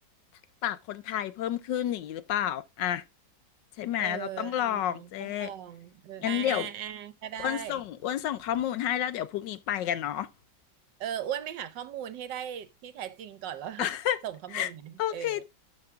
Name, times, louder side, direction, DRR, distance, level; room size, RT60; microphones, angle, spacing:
voice 1, 0.6-3.0 3.8-5.5 6.2-6.7 7.4-10.3 13.8-14.2 14.5-14.7 15.0-15.4, left 11 dB, 70° left, 1.2 m, -30 dB
voice 2, 4.0-7.8 11.0-13.9 14.2-15.4, right 10 dB, 70° right, 1.4 m, -38 dB
12.5 x 5.6 x 3.6 m
omnidirectional pair, 2.1 m